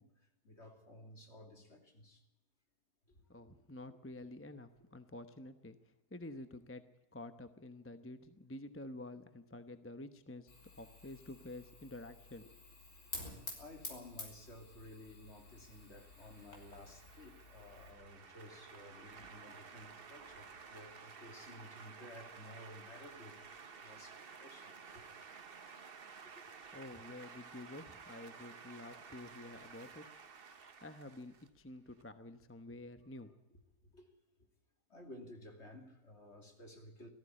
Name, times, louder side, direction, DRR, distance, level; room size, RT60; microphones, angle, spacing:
voice 1, 0.0-2.2 3.1-3.4 13.6-25.0 26.2-26.4 33.9-34.1 34.9-37.1, left 1 dB, 45° left, 3.2 m, -55 dB
voice 2, 3.3-6.8 7.1-12.6 26.7-30.0 30.8-33.6, left 2 dB, 10° left, 0.8 m, -50 dB
Fire, 10.5-17.9, left 2 dB, 70° left, 5.0 m, -51 dB
sound 1, 15.3-32.0, right 5 dB, 40° right, 1.2 m, -54 dB
18.5 x 15.0 x 9.8 m
omnidirectional pair, 1.6 m